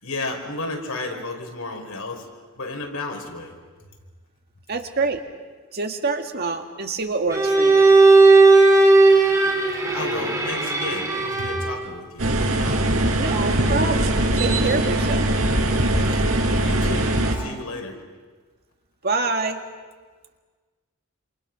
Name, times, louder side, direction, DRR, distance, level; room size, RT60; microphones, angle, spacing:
voice 1, 0.0-2.3 2.6-3.5 9.9-12.3 16.1-16.2 16.6-18.0, left 2 dB, 85° left, 2 dB, 4.9 m, -32 dB
voice 2, 4.7-5.2 5.7-7.9 13.2-14.1 14.3-15.3 19.0-19.6, right 3 dB, 50° right, 4 dB, 2.0 m, -26 dB
Bowed string instrument, 7.3-11.8, right 3 dB, 15° right, 4.1 m, -16 dB
sound 1, 12.2-17.3, right 1 dB, 80° right, 4.3 m, -21 dB
28.0 x 27.5 x 6.1 m, 1.4 s
head